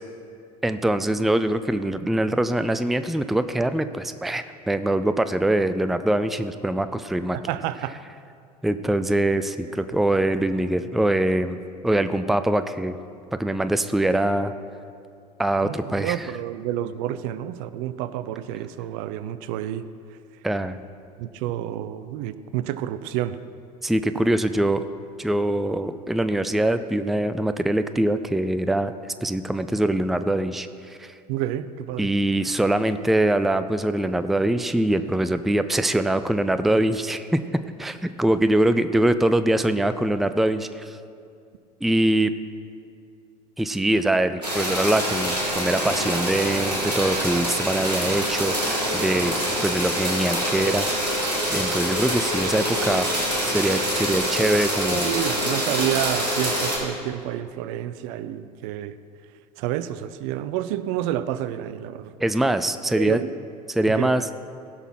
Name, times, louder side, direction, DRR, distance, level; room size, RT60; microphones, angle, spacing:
voice 1, 0.6-7.4 8.6-11.6 11.8-13.0 13.3-14.5 15.4-16.3 20.4-20.8 23.8-24.8 25.2-28.9 29.2-31.1 32.0-37.4 37.8-41.0 41.8-42.3 43.6-49.3 49.6-50.9 51.5-53.1 53.4-55.1 62.2-63.2 63.7-64.2, right 1 dB, ahead, 11 dB, 0.4 m, -23 dB
voice 2, 7.3-8.0 15.6-19.8 21.2-23.4 31.3-32.1 54.9-58.9 59.6-62.1 62.9-63.3 64.0-64.3, right 12 dB, 55° right, 14 dB, 0.5 m, -29 dB
sound 1, 44.4-56.8, equal, 90° right, 2.7 m, -25 dB
16.5 x 6.0 x 5.8 m, 2.4 s
figure-of-eight pair, 70°, 21 cm